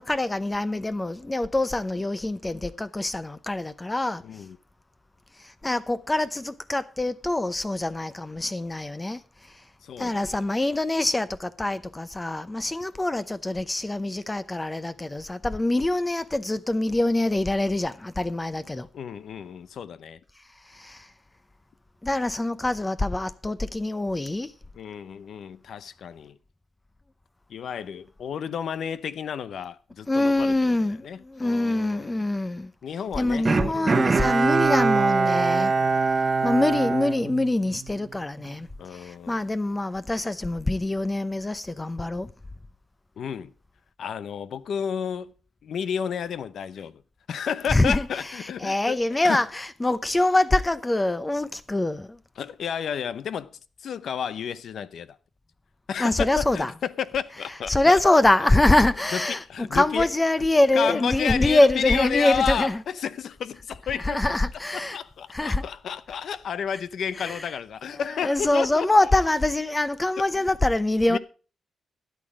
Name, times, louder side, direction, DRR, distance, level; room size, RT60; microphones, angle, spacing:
voice 1, 0.0-4.2 5.4-9.2 10.0-18.9 20.7-21.1 22.0-24.5 30.1-32.7 33.2-35.7 36.4-42.3 47.7-48.1 48.6-52.2 56.0-56.7 57.7-62.8 64.0-65.0 65.3-65.6 67.2-67.4 68.2-71.2, left 2 dB, 20° left, 0.7 m, -24 dB
voice 2, 4.2-4.6 9.8-10.4 18.9-20.2 24.7-26.4 27.5-32.3 32.8-34.5 35.3-36.0 38.8-39.4 43.2-43.5 44.0-45.3 45.6-47.0 47.3-49.0 49.2-49.4 52.4-55.2 55.9-58.0 59.1-60.1 60.7-64.2 64.7-68.9 71.1-71.2, left 8 dB, 75° left, 0.7 m, -32 dB
Bowed string instrument, 33.5-38.0 38.4-38.5, right 4 dB, 40° right, 1.0 m, -23 dB
13.0 x 9.4 x 4.8 m
cardioid pair, 100°, 0 cm